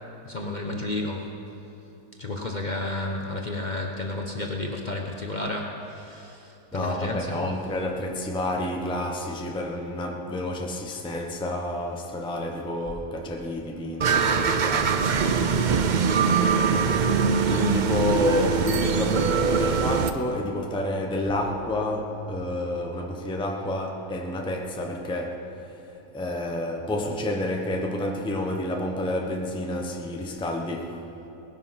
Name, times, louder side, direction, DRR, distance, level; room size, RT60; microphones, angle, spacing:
voice 1, 0.2-1.3 2.2-7.5, left 2 dB, 35° left, 1.0 m, -32 dB
voice 2, 6.7-15.0 16.4-25.5 26.1-31.0, left 1 dB, 5° left, 0.9 m, -29 dB
sound 1, 14.0-20.1, right 6 dB, 70° right, 0.4 m, -22 dB
19.5 x 10.0 x 5.8 m
omnidirectional pair, 1.6 m